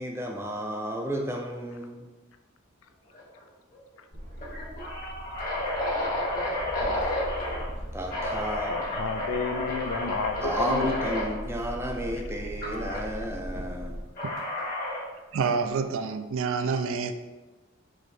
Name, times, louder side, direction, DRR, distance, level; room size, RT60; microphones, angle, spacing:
voice 1, 0.0-2.1 7.9-8.8 10.4-14.0, equal, 10° right, 1 dB, 0.4 m, -32 dB
sound 1, 3.1-3.4 3.7-3.8 4.4-7.6 8.1-11.3 12.6-13.0 14.2-15.1, left 1 dB, 45° left, 1.3 m, -31 dB
sound 2, 4.1-14.0, equal, 40° right, 0.8 m, -40 dB
voice 2, 8.7-10.9, left 5 dB, 75° left, 8 dB, 0.4 m, -31 dB
voice 3, 15.3-17.1, right 5 dB, 80° right, 9 dB, 0.4 m, -28 dB
4.7 x 3.1 x 3.2 m, 1.2 s
head